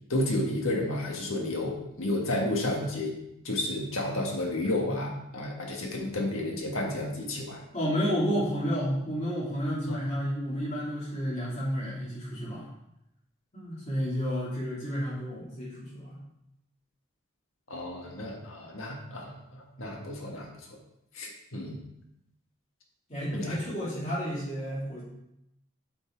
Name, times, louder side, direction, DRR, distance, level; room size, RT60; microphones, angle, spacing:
voice 1, 0.1-3.2 3.4-7.6 9.9-10.0 17.7-20.5 21.1-21.8 23.3-23.6, left 1 dB, 75° left, 0 dB, 1.6 m, -31 dB
voice 2, 7.7-12.6 13.5-16.2 23.1-25.0, equal, 35° left, -6 dB, 2.8 m, -31 dB
7.8 x 5.5 x 4.5 m, 0.83 s
head